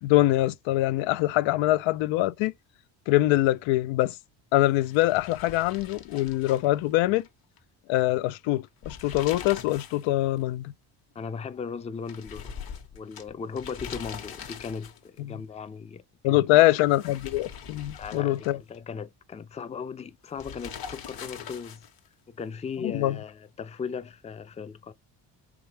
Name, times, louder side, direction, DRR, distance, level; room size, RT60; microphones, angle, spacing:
voice 1, 0.0-2.5 3.1-4.2 4.5-7.3 7.9-10.7 15.2-15.4 16.2-18.6 22.8-23.2, left 16 dB, 80° left, 0.6 m, -24 dB
sound 1, 4.8-7.3 7.6-7.7 8.7-10.1 10.4-10.5 12.1-15.2 16.8-18.8 20.4-22.1, left 7 dB, 50° left, 1.2 m, -42 dB
voice 2, 11.1-12.6 12.9-16.7 18.0-21.9 22.3-24.9, left 6 dB, 15° left, 0.4 m, -37 dB
5.0 x 3.4 x 2.9 m
cardioid pair, 85°, 45 cm